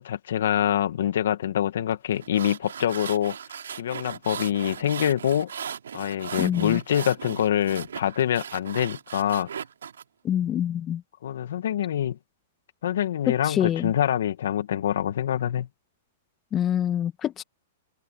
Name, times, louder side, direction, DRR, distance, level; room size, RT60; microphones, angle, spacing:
voice 1, 0.0-3.4 3.8-5.5 5.9-9.5 11.2-12.2 12.8-15.7, left 10 dB, 75° left, 2.1 m, -25 dB
sound 1, 2.1-10.0, right 8 dB, 90° right, 3.1 m, -38 dB
voice 2, 6.4-6.8 10.2-11.0 13.3-13.9 16.5-17.4, left 10 dB, 25° left, 1.8 m, -26 dB
open air
hypercardioid pair, 130°, 0 cm